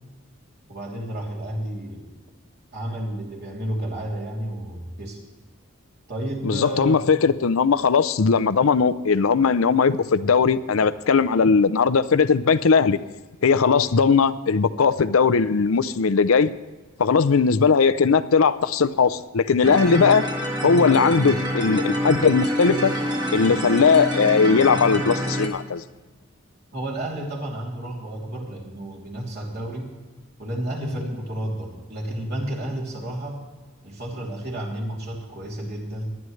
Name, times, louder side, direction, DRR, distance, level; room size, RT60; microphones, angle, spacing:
voice 1, 0.7-2.1 2.7-5.2 6.1-7.1 26.7-29.9 30.4-33.4 33.8-36.1, right 1 dB, 50° right, -3 dB, 3.0 m, -31 dB
voice 2, 6.4-13.0 13.4-16.5 17.0-20.2 20.6-22.9 23.3-25.8, left 5 dB, 85° left, 14 dB, 0.6 m, -19 dB
sound 1, 19.6-25.5, equal, 20° right, 1.6 m, -26 dB
19.0 x 11.0 x 3.2 m, 1.3 s
head